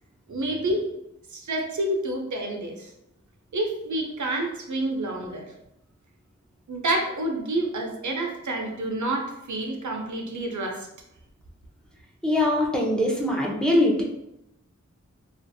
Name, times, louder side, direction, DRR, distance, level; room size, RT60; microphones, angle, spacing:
voice 1, 0.3-0.8 1.3-2.9 3.5-5.4 6.7-10.9, right 1 dB, 75° right, 2 dB, 0.6 m, -28 dB
voice 2, 12.2-14.0, left 1 dB, 5° left, -2 dB, 0.6 m, -22 dB
2.5 x 2.4 x 2.6 m, 0.83 s
wide cardioid pair, 60°, 30 cm